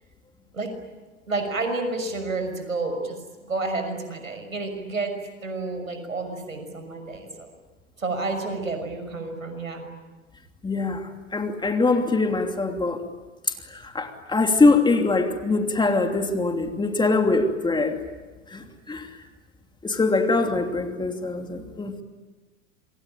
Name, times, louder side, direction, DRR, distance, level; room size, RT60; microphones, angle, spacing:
voice 1, 1.3-5.1 5.4-7.5 8.0-9.9, right 3 dB, 90° right, 7 dB, 6.2 m, -30 dB
voice 2, 10.6-13.0 13.7-18.0 18.5-19.1 19.8-21.9, left 3 dB, 10° left, 5 dB, 2.9 m, -23 dB
28.0 x 23.5 x 8.9 m, 1.3 s
hypercardioid pair, 95°, 39 cm